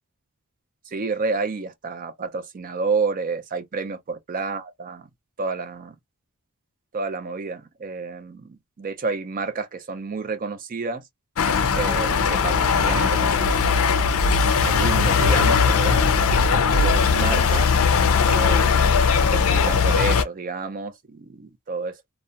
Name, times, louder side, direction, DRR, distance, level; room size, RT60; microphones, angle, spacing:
voice 1, 0.9-5.1 5.4-6.0 6.9-11.0 11.8-12.6 12.8-13.5 14.6-17.7 18.3-18.9 19.3-22.0, right 4 dB, 40° right, 0.4 m, -30 dB
sound 1, 11.4-20.2, left 5 dB, 65° left, 0.5 m, -19 dB
2.3 x 2.1 x 2.7 m
head